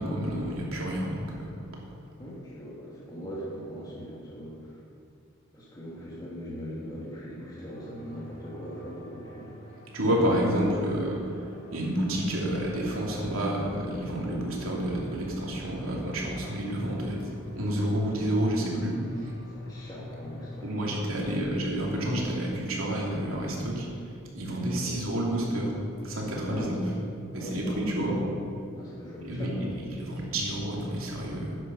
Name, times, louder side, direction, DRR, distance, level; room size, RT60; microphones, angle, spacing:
voice 1, 0.0-1.8 9.9-19.0 19.2-19.3 20.6-23.9 24.3-25.7 26.0-26.8 27.3-28.2 29.2-31.6, right 1 dB, 85° right, -3 dB, 2.8 m, -29 dB
voice 2, 2.2-4.7 5.5-9.5 19.5-20.8 21.2-21.5 24.6-25.0 26.5-26.9 27.3-28.3 28.7-29.7, equal, 20° left, -7 dB, 2.7 m, -40 dB
sound 1, 7.7-21.3, left 1 dB, 40° left, 3.6 m, -47 dB
13.0 x 9.7 x 5.5 m, 2.3 s
head